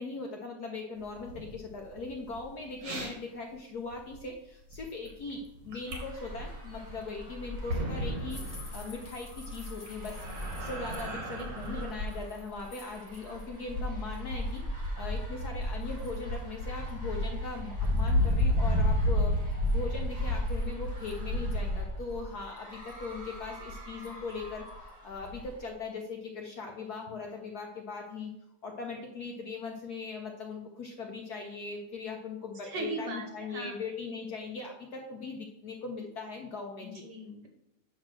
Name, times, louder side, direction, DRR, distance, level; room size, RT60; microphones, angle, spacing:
voice 1, 0.0-10.2 10.6-19.4 19.7-28.3 28.6-37.0, left 4 dB, 60° left, 1 dB, 1.1 m, -40 dB
sound 1, 1.0-3.1 3.5-3.6 3.9-4.3 4.6-6.1 6.4-6.5 6.9-11.9, right 2 dB, 90° right, 2.4 m, -40 dB
sound 2, 5.9-25.7, left 1 dB, 20° right, 1.2 m, -33 dB
sound 3, 8.3-13.6 14.0-14.6 15.2-15.3 15.6-16.4 16.9-17.0 17.2-17.3 17.8-18.5 19.5-21.5 22.1-22.2 22.6-23.1 24.0-24.3 24.7-24.9 25.3-25.4, left 2 dB, 15° left, 0.7 m, -53 dB
voice 2, 11.4-11.9 32.6-33.8 36.8-37.5, right 2 dB, 60° right, 3 dB, 1.4 m, -39 dB
8.5 x 3.1 x 6.1 m, 0.85 s
omnidirectional pair, 2.4 m